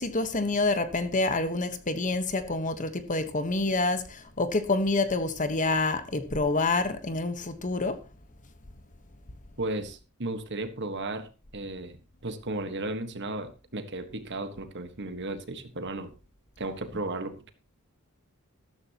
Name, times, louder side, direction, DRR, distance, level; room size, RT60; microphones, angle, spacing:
voice 1, 0.0-8.0, left 2 dB, 35° left, 1.3 m, -27 dB
voice 2, 9.6-16.1 16.6-17.5, right 2 dB, 55° right, 1.5 m, -35 dB
13.5 x 13.0 x 3.0 m
head